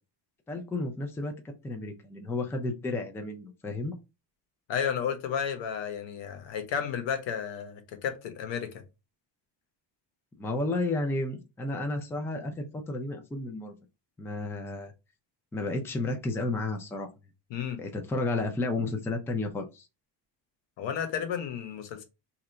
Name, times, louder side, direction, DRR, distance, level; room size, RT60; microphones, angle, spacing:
voice 1, 0.5-3.9 10.4-13.7 14.2-14.9 15.5-17.1 17.8-19.9, left 2 dB, 5° left, 0.3 m, -32 dB
voice 2, 4.7-8.8 17.5-17.8 20.8-22.0, left 7 dB, 85° left, 1.0 m, -32 dB
2.8 x 2.5 x 4.3 m
cardioid pair, 165°, 44 cm